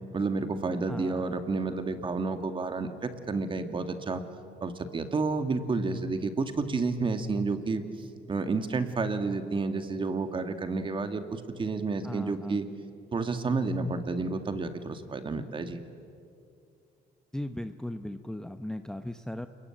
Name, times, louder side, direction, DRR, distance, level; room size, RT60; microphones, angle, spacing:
voice 1, 0.1-4.2 4.6-7.8 8.3-12.7 13.1-15.8, right 3 dB, 30° right, 8 dB, 2.2 m, -30 dB
voice 2, 0.9-1.4 12.0-12.6 17.3-19.5, left 1 dB, 5° left, 8 dB, 0.8 m, -37 dB
28.0 x 22.5 x 9.0 m, 2.5 s
cardioid pair, 110°, 17 cm